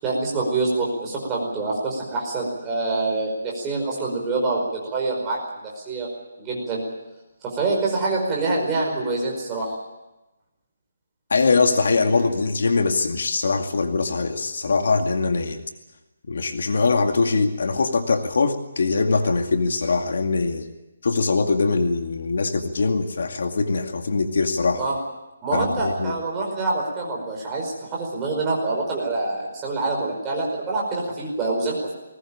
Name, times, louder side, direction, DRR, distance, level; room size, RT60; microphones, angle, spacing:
voice 1, 0.0-6.1 6.4-6.8 7.4-9.7 24.8-24.9 25.4-31.9, right 3 dB, 10° right, -2 dB, 5.1 m, -26 dB
voice 2, 11.3-15.6 16.3-20.7 21.0-24.9 25.5-26.1, left 4 dB, 60° left, 5 dB, 2.2 m, -22 dB
21.0 x 19.0 x 8.8 m, 1.0 s
hypercardioid pair, 175°, 0 cm